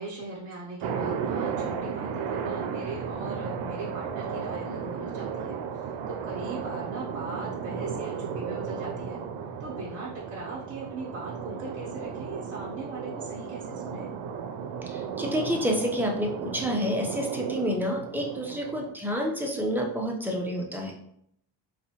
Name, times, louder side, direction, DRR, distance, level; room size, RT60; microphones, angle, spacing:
voice 1, 0.0-5.5 6.1-9.2 9.6-14.2, right 2 dB, 30° right, -7 dB, 0.9 m, -39 dB
sound 1, 0.8-18.9, right 6 dB, 80° right, 0.5 m, -34 dB
voice 2, 14.9-20.9, equal, 5° right, -1 dB, 0.5 m, -29 dB
3.9 x 2.3 x 2.8 m, 0.71 s
cardioid pair, 125°, 45 cm